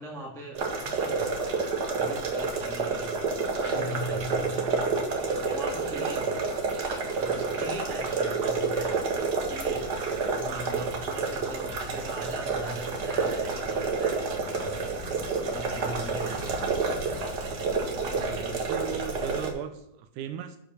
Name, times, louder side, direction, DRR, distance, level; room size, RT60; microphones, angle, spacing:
voice 1, 0.0-1.6 1.9-4.8 5.4-6.3 7.1-9.0 9.5-9.9 10.3-15.1 15.3-16.8, right 2 dB, ahead, -2 dB, 0.6 m, -41 dB
sound 1, 0.5-19.5, right 4 dB, 60° right, 1.1 m, -29 dB
sound 2, 3.6-5.3, equal, 75° left, 1.2 m, -37 dB
voice 2, 18.1-20.6, right 9 dB, 80° right, 8 dB, 2.0 m, -38 dB
10.0 x 5.1 x 6.2 m, 0.79 s
omnidirectional pair, 4.0 m